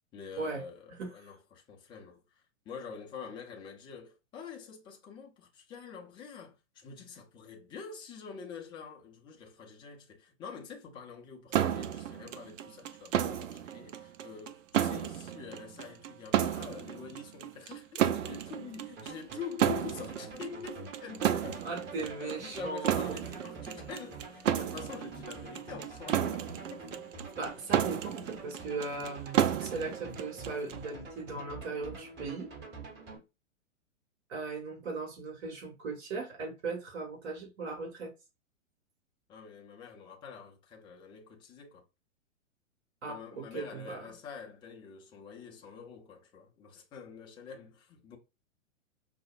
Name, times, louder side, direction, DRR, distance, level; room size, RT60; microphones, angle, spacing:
voice 1, 0.1-21.8 22.2-26.9 39.3-41.8 43.1-48.2, left 6 dB, 10° left, 0.4 m, -46 dB
sound 1, 11.5-30.9, right 10 dB, 70° right, 0.5 m, -33 dB
sound 2, 19.0-33.2, right 3 dB, 25° right, 1.3 m, -47 dB
voice 2, 21.6-23.2 27.4-32.5 34.3-38.1 43.0-44.1, right 3 dB, 55° right, 1.6 m, -38 dB
4.9 x 2.0 x 2.5 m
figure-of-eight pair, 110°, 40 cm